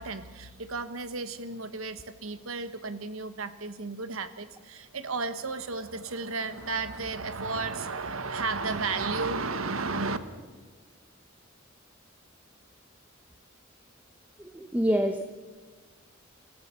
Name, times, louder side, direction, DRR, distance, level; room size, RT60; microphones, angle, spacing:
voice 1, 0.0-10.2, right 3 dB, 80° right, 11 dB, 1.4 m, -33 dB
voice 2, 14.5-15.2, equal, 10° right, 7 dB, 0.9 m, -25 dB
26.5 x 14.5 x 7.1 m, 1.4 s
head